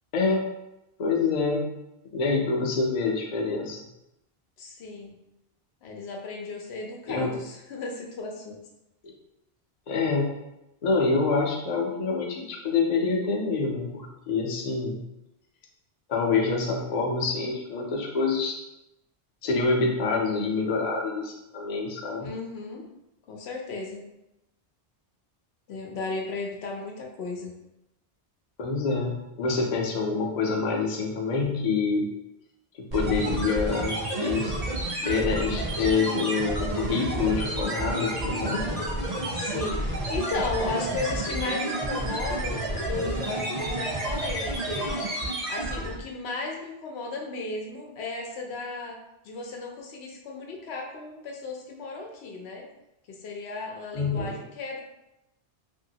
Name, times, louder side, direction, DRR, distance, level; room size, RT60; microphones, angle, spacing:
voice 1, 0.1-0.5 1.0-1.6 2.1-3.8 7.1-7.3 9.0-9.1 9.9-10.3 10.8-15.0 16.1-18.6 19.4-22.3 28.6-32.1 32.7-34.6 35.0-38.7 53.9-54.4, left 4 dB, 50° left, 0 dB, 0.6 m, -26 dB
voice 2, 4.6-5.2 5.8-8.6 22.2-22.8 23.3-24.1 25.7-27.5 39.3-45.0 45.5-49.0 49.2-52.7 53.1-54.8, left 3 dB, 85° left, 1 dB, 0.9 m, -35 dB
sound 1, 32.9-46.1, right 1 dB, 45° right, 0.7 m, -30 dB
2.9 x 2.6 x 2.7 m, 0.90 s
omnidirectional pair, 1.0 m